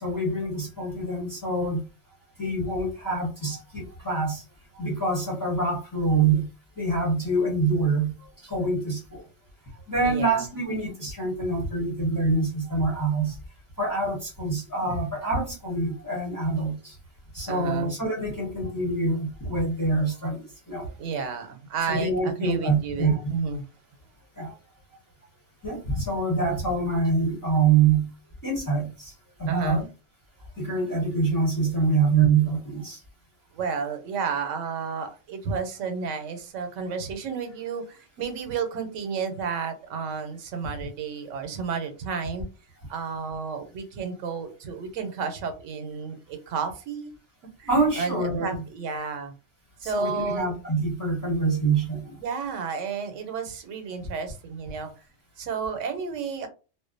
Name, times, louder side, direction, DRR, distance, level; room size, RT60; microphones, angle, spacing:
voice 1, 0.0-1.9 2.4-4.4 4.7-6.5 6.8-8.1 8.4-9.2 9.9-13.4 13.8-16.9 17.3-20.9 21.9-23.3 24.4-24.5 25.6-28.1 28.4-29.1 29.4-29.8 30.6-33.0 47.7-48.6 49.8-52.1, right 3 dB, 20° left, 0.6 m, -25 dB
voice 2, 10.0-10.4 17.5-17.9 21.0-23.7 29.5-29.9 33.5-42.5 42.9-47.1 47.6-49.3 49.8-50.5 52.2-54.9 55.4-56.5, right 5 dB, 85° right, 1.0 m, -32 dB
2.4 x 2.0 x 2.5 m
omnidirectional pair, 1.3 m